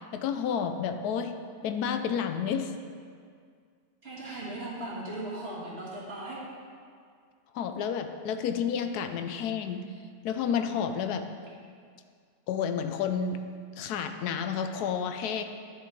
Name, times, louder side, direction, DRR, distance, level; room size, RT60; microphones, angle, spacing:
voice 1, 0.0-1.3 1.6-2.7 7.5-9.8 10.2-11.3 12.5-13.4 13.8-15.4, left 7 dB, 80° left, 8 dB, 1.1 m, -30 dB
voice 2, 4.0-6.4, right 1 dB, 40° right, -6 dB, 2.0 m, -38 dB
10.5 x 5.4 x 4.5 m, 2.1 s
omnidirectional pair, 1.6 m